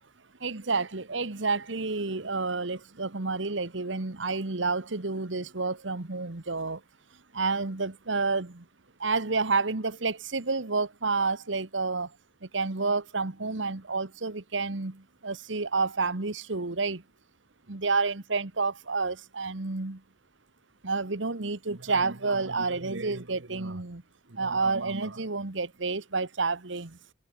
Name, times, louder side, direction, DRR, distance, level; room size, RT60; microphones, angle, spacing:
voice 1, 0.4-6.8 7.3-8.6 9.0-12.1 12.5-17.0 17.7-20.0 20.8-24.0 24.3-27.0, right 4 dB, 80° right, 1.5 m, -29 dB
head